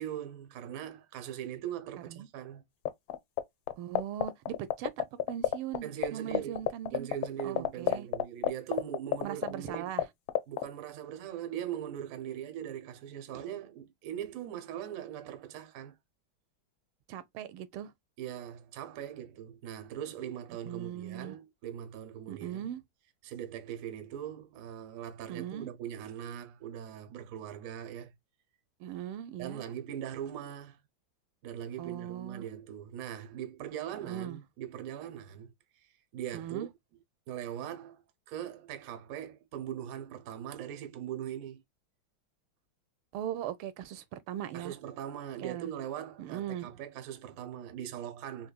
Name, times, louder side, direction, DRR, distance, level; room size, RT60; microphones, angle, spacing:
voice 1, 0.0-2.6 5.8-6.6 6.9-9.9 10.5-16.0 18.2-22.7 23.2-28.1 29.4-30.8 31.4-35.5 35.8-36.7 37.3-38.0 38.3-41.6 44.5-48.5, right 10 dB, 65° right, 0.8 m, -40 dB
sound 1, 2.9-3.4 3.7-5.8 6.0-6.1 6.3-10.0 10.3-10.6, left 14 dB, 75° left, 1.3 m, -26 dB
voice 2, 3.8-7.1 7.4-8.1 9.2-10.0 17.1-17.9 20.6-21.4 22.3-22.8 25.3-25.7 28.8-29.6 31.8-32.4 34.0-34.4 36.3-36.7 43.1-44.7 45.4-45.7 46.2-46.7, right 11 dB, 90° right, 1.5 m, -39 dB
3.9 x 2.8 x 2.2 m
omnidirectional pair, 2.3 m